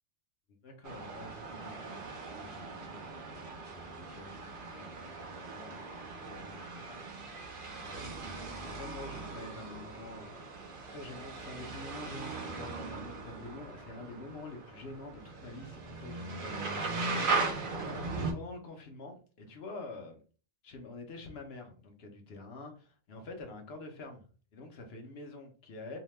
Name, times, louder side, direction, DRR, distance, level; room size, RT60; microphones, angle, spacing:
voice 1, 0.6-2.0 2.4-3.0 4.1-4.4 4.7-4.9 5.5-7.1 7.8-10.5 10.9-17.4 18.1-20.2 20.6-24.2 24.5-26.0, left 2 dB, 60° left, 0.9 m, -47 dB
sound 1, 0.8-18.3, right 3 dB, 50° right, 0.8 m, -39 dB
2.7 x 2.2 x 3.1 m
omnidirectional pair, 1.2 m